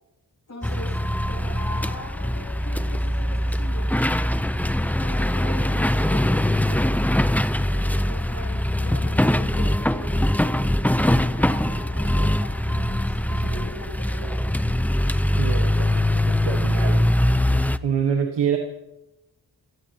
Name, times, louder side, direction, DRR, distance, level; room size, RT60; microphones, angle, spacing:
voice 1, 0.5-1.0 1.3-3.9 4.7-7.0 7.6-14.5, left 2 dB, 45° left, -6 dB, 7.7 m, -41 dB
sound 1, 0.6-17.8, left 1 dB, 5° left, 0.8 m, -22 dB
voice 2, 15.4-17.1 17.8-18.6, right 7 dB, 85° right, 2 dB, 1.8 m, -26 dB
28.5 x 16.5 x 3.1 m, 0.96 s
cardioid pair, 50°, 41 cm